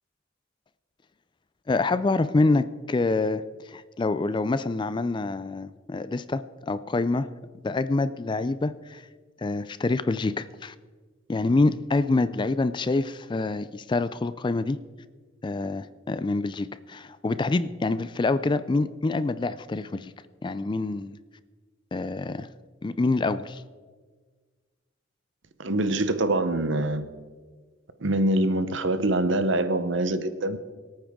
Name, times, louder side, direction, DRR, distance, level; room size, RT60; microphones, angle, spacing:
voice 1, 1.7-7.3 7.6-9.0 9.4-10.7 11.3-14.8 15.4-20.1 20.4-21.2 21.9-22.5 22.8-23.6, left 3 dB, 25° left, 14 dB, 0.3 m, -26 dB
voice 2, 25.6-27.0 28.0-30.6, right 1 dB, 65° right, 11 dB, 0.8 m, -24 dB
23.5 x 8.9 x 3.7 m, 1.5 s
head